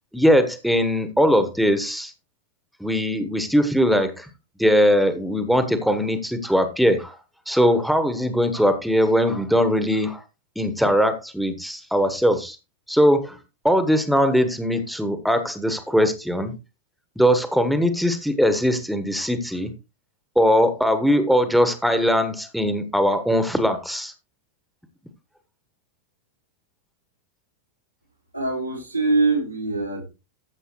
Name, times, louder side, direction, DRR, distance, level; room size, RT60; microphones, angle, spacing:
voice 1, 0.1-2.1 2.8-4.3 4.6-7.2 7.5-10.2 10.5-12.6 12.9-13.4 13.6-16.5 17.2-19.7 20.3-24.1, equal, ahead, 9 dB, 1.4 m, -20 dB
voice 2, 28.3-30.0, right 3 dB, 85° right, -3 dB, 2.9 m, -23 dB
13.5 x 7.5 x 3.1 m, 0.27 s
figure-of-eight pair, 90°, 0 cm